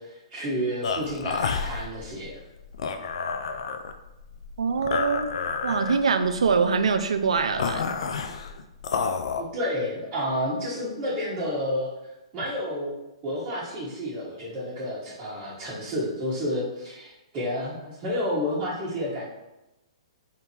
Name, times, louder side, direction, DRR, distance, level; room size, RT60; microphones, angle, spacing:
voice 1, 0.0-2.4 9.3-11.9 12.3-12.9 13.2-19.3, equal, 30° right, -8 dB, 1.3 m, -30 dB
sound 1, 0.8-9.4, left 5 dB, 70° left, 0.4 m, -30 dB
voice 2, 4.6-5.3 5.6-7.8, right 5 dB, 85° right, 9 dB, 0.4 m, -23 dB
3.7 x 2.7 x 4.4 m, 0.96 s
hypercardioid pair, 135°, 3 cm